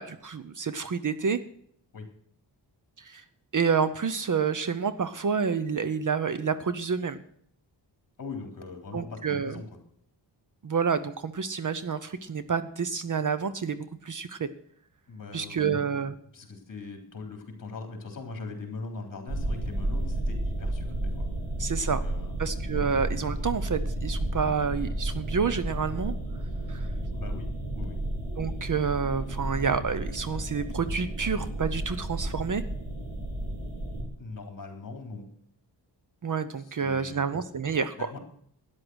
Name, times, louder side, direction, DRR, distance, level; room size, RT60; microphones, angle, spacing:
voice 1, 0.0-1.4 3.0-3.2 3.5-7.2 8.9-9.6 10.6-14.5 15.3-16.1 21.6-22.0 22.4-26.1 26.7-26.9 28.4-32.6 36.2-37.9, right 6 dB, 45° right, 13 dB, 0.7 m, -29 dB
voice 2, 8.2-9.7 15.1-15.8 16.3-21.3 21.8-22.4 27.1-27.5 27.7-28.0 34.2-35.3 36.6-37.2 38.0-38.2, left 3 dB, 45° left, 3 dB, 3.6 m, -41 dB
sound 1, 19.3-34.0, right 1 dB, 80° right, 4.3 m, -32 dB
13.0 x 10.0 x 6.3 m, 0.65 s
wide cardioid pair, 175°, 44 cm